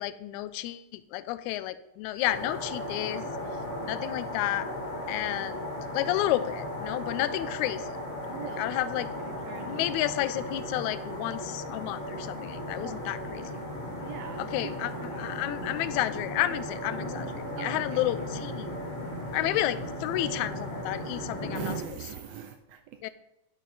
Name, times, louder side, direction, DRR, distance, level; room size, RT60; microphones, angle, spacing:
voice 1, 0.0-3.2 3.8-4.7 5.1-5.6 5.9-7.9 8.2-9.1 9.7-13.4 14.4-17.3 17.6-18.7 19.3-21.6 23.0-23.1, left 14 dB, 80° left, 14 dB, 1.9 m, -31 dB
sound 1, 2.2-21.8, left 1 dB, 25° left, 2.0 m, -36 dB
voice 2, 8.3-9.9 12.8-13.8 14.0-15.4 17.6-18.1 21.4-23.1, right 9 dB, 80° right, 7 dB, 1.5 m, -43 dB
10.5 x 7.3 x 4.0 m, 0.90 s
omnidirectional pair, 3.4 m